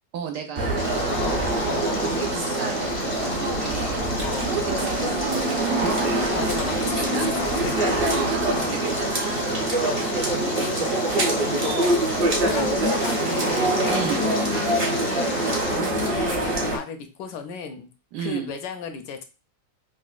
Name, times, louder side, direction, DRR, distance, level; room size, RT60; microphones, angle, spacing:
voice 1, 0.1-1.3 1.7-4.0 4.4-7.3 8.1-9.6 10.1-11.2 12.1-12.7 13.9-14.2 18.1-18.5, right 7 dB, 75° right, 4 dB, 1.2 m, -34 dB
sound 1, 0.5-16.8, right 1 dB, 45° right, 0.7 m, -24 dB
Stream, 0.8-15.8, left 3 dB, 60° left, 0.8 m, -36 dB
voice 2, 1.1-2.2 3.6-3.8 4.2-4.5 6.3-8.1 8.5-8.7 9.7-10.4 11.6-15.3 15.7-17.9 18.2-19.2, left 7 dB, 80° left, 6 dB, 1.2 m, -34 dB
5.0 x 2.1 x 2.4 m, 0.30 s
omnidirectional pair, 1.9 m